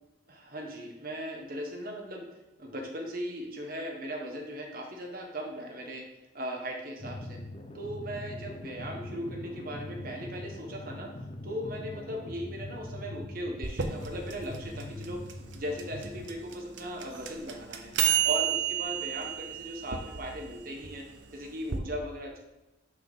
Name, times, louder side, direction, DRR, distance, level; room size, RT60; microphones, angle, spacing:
voice 1, 0.3-2.3 2.6-6.0 6.3-7.4 7.7-11.1 11.4-15.2 15.5-17.9 18.2-21.0 21.3-22.4, equal, 45° right, 1 dB, 1.3 m, -38 dB
sound 1, 7.0-16.3, left 1 dB, 30° left, 0.6 m, -42 dB
sound 2, 13.6-21.8, right 9 dB, 70° right, 0.8 m, -32 dB
6.6 x 4.6 x 5.6 m, 1.0 s
head